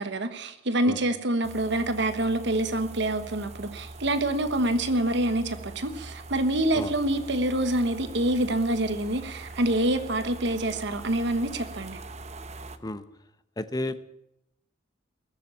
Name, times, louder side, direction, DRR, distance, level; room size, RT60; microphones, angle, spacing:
voice 1, 0.0-12.0, right 1 dB, 60° right, 9 dB, 1.3 m, -26 dB
sound 1, 1.4-12.8, right 2 dB, 35° right, 0.9 m, -42 dB
voice 2, 13.6-14.0, left 1 dB, 20° left, 12 dB, 0.8 m, -31 dB
20.5 x 7.5 x 8.5 m, 0.85 s
head